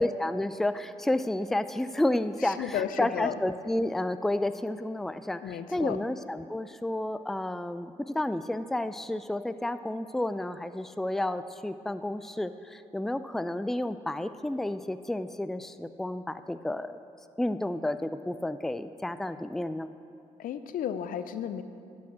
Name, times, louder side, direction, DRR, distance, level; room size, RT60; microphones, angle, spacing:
voice 1, 0.0-17.0 17.4-19.9, left 1 dB, ahead, 12 dB, 0.4 m, -31 dB
voice 2, 2.4-3.4 5.4-6.0 20.4-21.6, left 9 dB, 65° left, 11 dB, 0.5 m, -33 dB
11.5 x 6.2 x 5.9 m, 2.5 s
hypercardioid pair, 45°, 15 cm